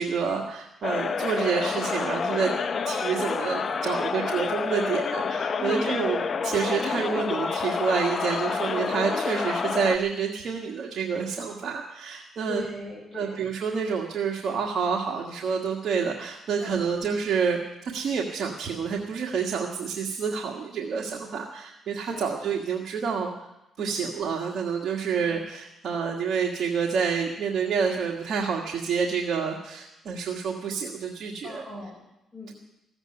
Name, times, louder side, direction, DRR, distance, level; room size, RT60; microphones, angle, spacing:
voice 1, 0.0-2.5 2.9-12.6 13.1-23.3 23.8-31.6 32.5-32.6, right 6 dB, 60° right, -1 dB, 1.6 m, -28 dB
sound 1, 0.8-10.0, left 5 dB, 45° left, 0.8 m, -28 dB
voice 2, 2.4-2.8 5.6-6.2 12.5-13.3 16.6-16.8 22.0-22.4 23.8-24.0 25.2-25.3 31.4-32.5, left 2 dB, ahead, -7 dB, 6.0 m, -39 dB
15.0 x 8.0 x 9.6 m, 0.89 s
cardioid pair, 90°, 0 cm